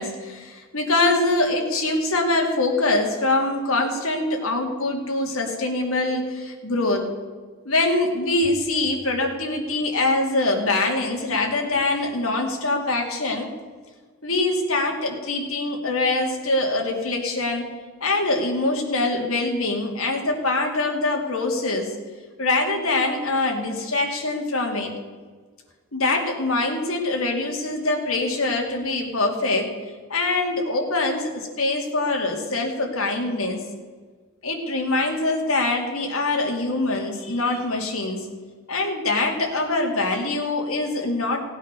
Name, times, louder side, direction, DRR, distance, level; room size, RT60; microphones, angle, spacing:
voice 1, 0.0-7.1 7.6-13.5 14.2-17.7 18.0-21.9 22.4-24.9 25.9-29.7 30.1-33.7 34.4-38.3 38.7-41.4, left 2 dB, 70° left, 2 dB, 2.6 m, -24 dB
17.5 x 8.9 x 6.7 m, 1.5 s
head